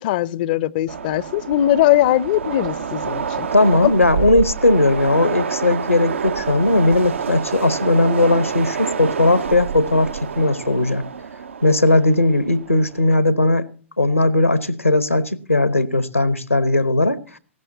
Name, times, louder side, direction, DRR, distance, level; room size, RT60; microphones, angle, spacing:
voice 1, 0.0-3.5 3.8-3.9, left 13 dB, 40° left, 0.6 m, -20 dB
Train, 0.9-13.1, right 6 dB, 65° right, 0.6 m, -28 dB
voice 2, 3.5-11.0 11.6-13.7 14.0-17.2, left 2 dB, 85° left, 1.1 m, -17 dB
19.0 x 16.0 x 2.8 m
figure-of-eight pair, 105°, 7 cm